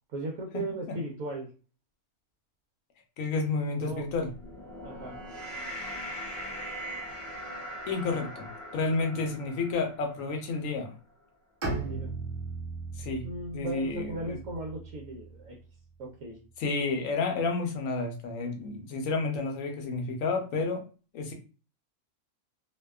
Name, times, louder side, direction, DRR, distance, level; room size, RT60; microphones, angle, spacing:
voice 1, 0.1-1.5 3.8-4.1 4.8-5.2 11.6-12.1 13.2-15.6 16.0-16.4, right 2 dB, 75° right, 0 dB, 1.0 m, -37 dB
voice 2, 3.2-4.3 7.9-10.9 13.0-13.2 13.5-14.4 16.6-20.8 21.1-21.3, left 3 dB, 70° left, 4 dB, 0.9 m, -30 dB
sound 1, 4.1-10.6, equal, 25° left, 0.8 m, -41 dB
Bowed string instrument, 11.6-15.5, right 3 dB, 40° right, 1.2 m, -37 dB
2.6 x 2.2 x 2.2 m, 0.35 s
omnidirectional pair, 1.6 m